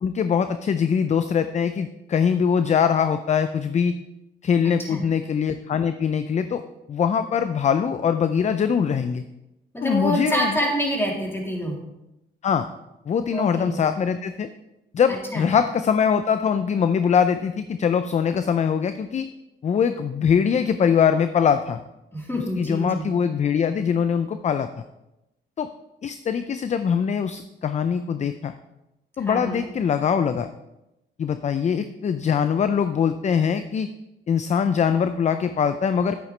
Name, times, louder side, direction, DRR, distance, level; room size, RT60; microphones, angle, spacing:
voice 1, 0.0-3.9 4.4-6.6 6.9-9.2 9.8-10.6 12.4-12.7 13.1-14.5 14.9-19.3 19.6-21.8 22.6-24.7 25.6-25.7 26.0-28.5 29.2-30.5 31.2-33.9 34.3-36.2, left 7 dB, 35° left, 10 dB, 0.5 m, -22 dB
voice 2, 9.7-11.8 13.3-13.8 15.1-15.5 22.1-23.1 29.2-29.6, equal, 10° left, -2 dB, 3.0 m, -26 dB
10.0 x 8.7 x 3.3 m, 0.92 s
cardioid pair, 90°, 20 cm